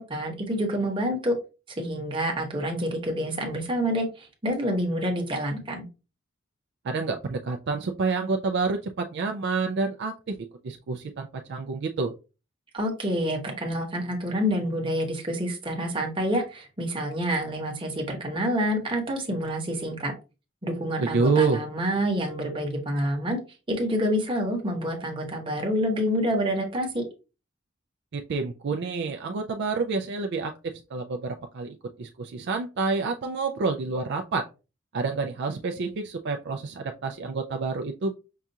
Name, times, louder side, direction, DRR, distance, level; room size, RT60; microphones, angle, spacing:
voice 1, 0.0-1.3 1.8-5.9 12.7-20.1 20.6-23.4 23.7-27.0, equal, 25° right, 1 dB, 1.0 m, -27 dB
voice 2, 6.8-10.4 10.6-12.1 21.0-21.6 28.1-34.5 34.9-38.1, right 4 dB, 60° right, 4 dB, 0.4 m, -28 dB
5.5 x 2.4 x 2.7 m, 0.31 s
head